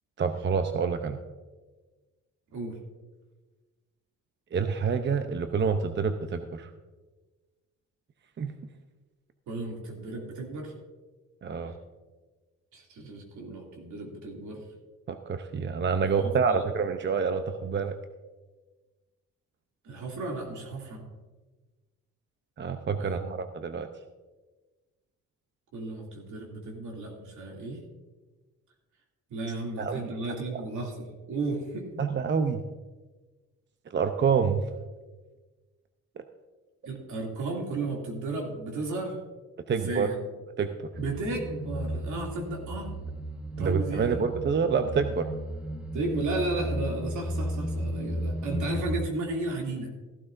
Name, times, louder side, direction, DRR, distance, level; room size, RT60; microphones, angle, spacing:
voice 1, 0.2-1.2 4.5-6.7 8.4-8.5 11.4-11.7 15.1-17.9 22.6-23.9 29.8-30.1 32.0-32.6 33.9-34.6 39.7-40.1 40.6-40.7 43.6-45.3, right 6 dB, 40° right, 8 dB, 0.7 m, -27 dB
voice 2, 9.5-10.7 12.7-14.6 16.0-16.6 19.8-21.0 23.0-23.4 25.7-27.8 29.3-32.1 36.9-39.2 39.7-40.3 41.0-42.9 43.6-44.3 45.9-49.9, right 2 dB, 75° right, 0 dB, 2.8 m, -34 dB
sound 1, 40.9-49.0, equal, 5° right, 1.0 m, -34 dB
15.0 x 12.0 x 2.6 m, 1.3 s
cardioid pair, 90°, 30 cm